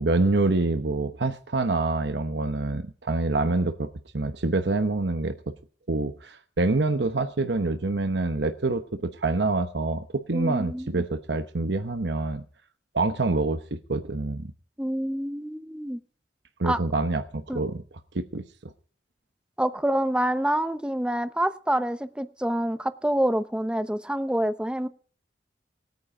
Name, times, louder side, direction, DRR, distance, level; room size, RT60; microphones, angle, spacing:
voice 1, 0.0-3.9 4.1-5.4 5.9-12.4 12.9-14.5 16.6-17.8 18.1-18.7, right 2 dB, 70° right, 8 dB, 1.0 m, -26 dB
voice 2, 10.3-11.0 14.8-16.0 16.6-16.8 17.5-17.6 19.6-24.9, right 1 dB, 5° right, 12 dB, 0.8 m, -27 dB
19.5 x 9.5 x 5.0 m, 0.43 s
head